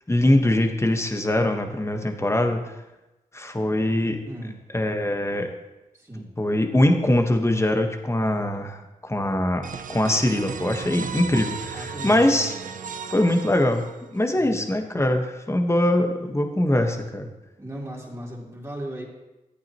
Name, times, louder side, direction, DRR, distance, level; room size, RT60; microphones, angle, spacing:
voice 1, 0.1-2.6 3.3-4.2 4.7-5.5 6.4-9.6 9.9-12.5 13.1-17.3, left 1 dB, 20° left, 4 dB, 1.4 m, -22 dB
voice 2, 4.2-4.6 5.9-6.3 11.7-12.5 14.3-14.7 17.6-19.0, right 1 dB, 20° right, -4 dB, 3.7 m, -36 dB
sound 1, 9.6-14.2, right 6 dB, 65° right, 0.6 m, -35 dB
13.5 x 8.6 x 3.1 m, 0.99 s
cardioid pair, 45°, 15 cm